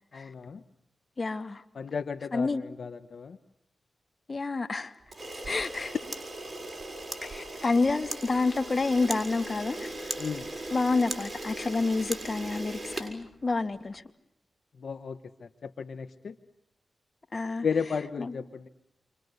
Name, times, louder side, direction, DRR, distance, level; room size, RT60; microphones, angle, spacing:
voice 1, 0.1-0.6 1.7-3.4 10.2-10.5 14.8-16.3 17.6-18.7, left 6 dB, 75° left, 1.1 m, -34 dB
voice 2, 1.2-1.6 2.3-2.6 4.3-4.9 5.5-5.9 7.2-9.9 10.7-14.0 17.3-17.7 18.2-18.3, left 3 dB, 45° left, 2.3 m, -28 dB
Camera, 5.1-13.8, right 2 dB, 30° right, 6.4 m, -38 dB
29.5 x 25.0 x 8.0 m
cardioid pair, 45°, 0 cm